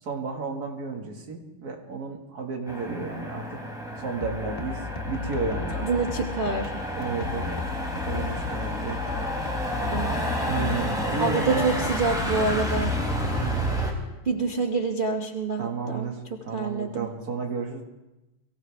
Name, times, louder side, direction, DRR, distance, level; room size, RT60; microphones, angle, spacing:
voice 1, 0.0-3.6 4.0-5.9 7.0-7.6 8.0-9.0 10.4-11.9 13.2-13.7 15.6-17.8, right 4 dB, 45° right, 2 dB, 2.3 m, -32 dB
Motor vehicle (road), 2.7-13.9, equal, ahead, 3.0 m, -30 dB
sound 1, 4.2-10.2, left 7 dB, 35° left, 1.0 m, -36 dB
voice 2, 5.8-6.8 9.9-10.2 11.2-12.9 14.3-16.1 16.5-17.1, right 4 dB, 75° right, 2 dB, 0.4 m, -27 dB
23.5 x 15.5 x 3.4 m, 0.99 s
omnidirectional pair, 2.4 m